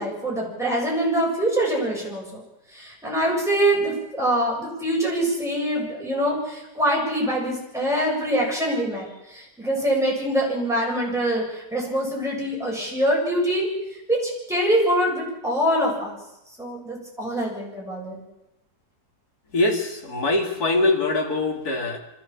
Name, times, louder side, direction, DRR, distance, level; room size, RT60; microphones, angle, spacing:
voice 1, 0.0-2.4 2.7-13.7 14.1-16.1 16.6-18.2, right 1 dB, ahead, -3 dB, 7.4 m, -24 dB
voice 2, 19.5-22.0, left 2 dB, 55° left, 2 dB, 3.1 m, -23 dB
25.5 x 14.0 x 7.4 m, 0.91 s
omnidirectional pair, 1.9 m